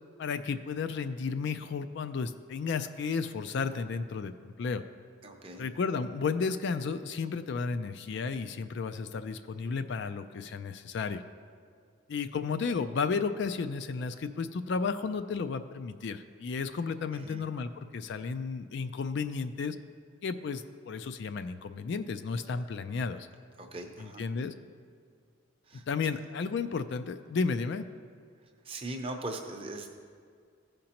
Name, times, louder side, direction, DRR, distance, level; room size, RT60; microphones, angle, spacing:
voice 1, 0.2-4.8 5.6-11.2 12.1-19.8 20.2-23.3 24.0-24.5 25.9-27.8, left 5 dB, 55° left, 10 dB, 0.3 m, -33 dB
voice 2, 5.2-5.6 17.1-17.5 23.6-24.2 25.7-25.8 28.6-29.9, right 2 dB, 25° right, 3 dB, 0.7 m, -40 dB
15.5 x 5.1 x 2.9 m, 2.1 s
head